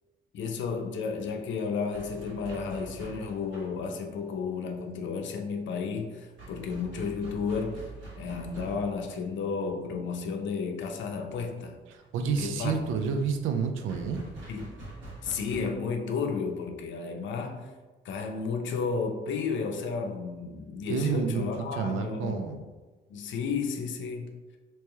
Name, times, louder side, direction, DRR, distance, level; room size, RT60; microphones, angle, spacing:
voice 1, 0.3-7.8 8.2-11.8 12.2-12.7 14.5-14.7 15.2-17.7 18.0-22.6 23.1-24.4, left 5 dB, 70° left, 4 dB, 0.6 m, -32 dB
sound 1, 0.9-15.6, right 3 dB, 65° right, 1.3 m, -47 dB
voice 2, 11.9-14.2 20.9-22.6, right 6 dB, 90° right, 6 dB, 0.4 m, -29 dB
3.0 x 3.0 x 3.4 m, 1.3 s
cardioid pair, 90°, 20 cm